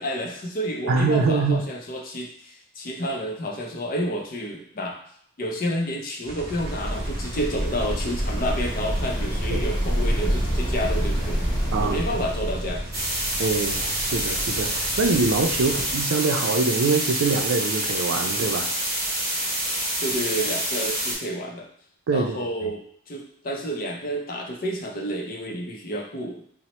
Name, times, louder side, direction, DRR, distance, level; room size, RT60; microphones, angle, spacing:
voice 1, 0.0-5.0 5.4-11.4 11.8-12.8 15.6-15.9 20.0-21.7 22.1-26.4, equal, 45° left, 2 dB, 0.5 m, -30 dB
voice 2, 0.9-1.6 9.5-9.6 11.7-12.0 13.4-18.7 22.1-22.4, right 4 dB, 85° right, 5 dB, 0.4 m, -24 dB
sound 1, 6.2-16.0, equal, 45° right, 0.7 m, -38 dB
sound 2, 6.4-14.6, equal, 20° left, 1.0 m, -27 dB
sound 3, 12.9-21.1, right 1 dB, 15° right, 0.9 m, -27 dB
4.2 x 2.1 x 2.9 m, 0.66 s
head